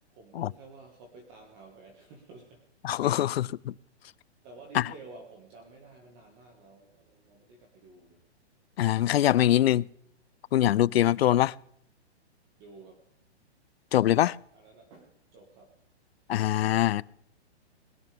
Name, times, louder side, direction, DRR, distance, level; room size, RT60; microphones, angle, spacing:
voice 1, 0.1-2.7 3.1-3.3 4.4-8.3 12.6-13.1 14.5-15.8, right 3 dB, 25° right, 1.8 m, -51 dB
voice 2, 2.8-3.7 4.7-4.8 8.8-9.9 10.5-11.5 13.9-14.4 16.3-17.0, left 13 dB, 65° left, 0.4 m, -23 dB
21.0 x 12.0 x 3.5 m
hypercardioid pair, 170°, 34 cm